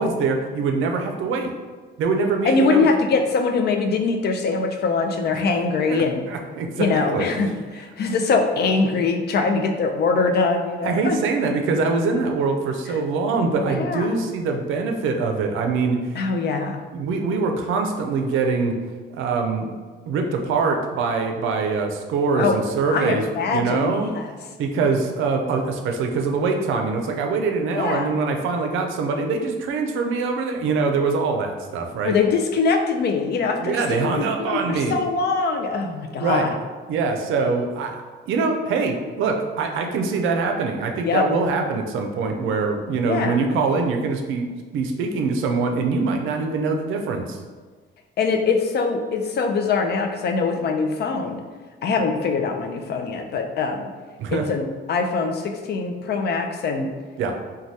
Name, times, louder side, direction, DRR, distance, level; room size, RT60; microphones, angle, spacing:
voice 1, 0.0-1.5 2.0-2.9 5.3-5.4 5.9-7.3 10.8-16.2 16.9-18.8 19.1-19.7 20.1-24.1 24.6-32.1 33.6-35.0 36.2-36.5 36.9-44.5 44.7-47.4 54.2-54.5 57.2-57.3, right 4 dB, 85° right, 4 dB, 0.4 m, -23 dB
voice 2, 2.4-6.3 6.8-11.2 13.7-14.1 16.2-16.8 22.3-22.6 22.9-24.3 27.8-28.1 32.0-36.5 41.0-41.2 43.1-43.6 48.2-51.4 51.8-53.9 54.3-56.9, left 4 dB, 55° left, 4 dB, 0.4 m, -23 dB
3.2 x 2.3 x 2.7 m, 1.4 s
cardioid pair, 90°, 20 cm